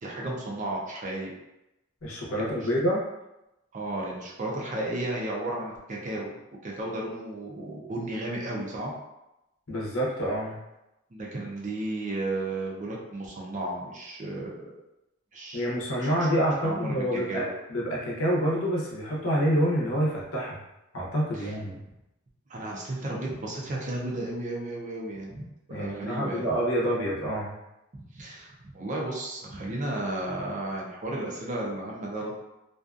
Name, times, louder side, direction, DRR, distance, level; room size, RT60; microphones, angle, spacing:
voice 1, 0.0-1.3 2.4-2.7 3.7-6.4 6.6-8.9 11.1-14.5 15.3-15.6 16.0-16.3 16.6-17.5 21.3-21.6 22.5-25.4 25.7-26.5 28.1-32.4, right 1 dB, 35° right, -2 dB, 0.5 m, -33 dB
voice 2, 2.0-3.0 9.7-10.6 15.5-20.6 20.9-21.8 25.7-27.5, equal, 80° left, -4 dB, 0.8 m, -27 dB
2.6 x 2.4 x 2.4 m, 0.94 s
head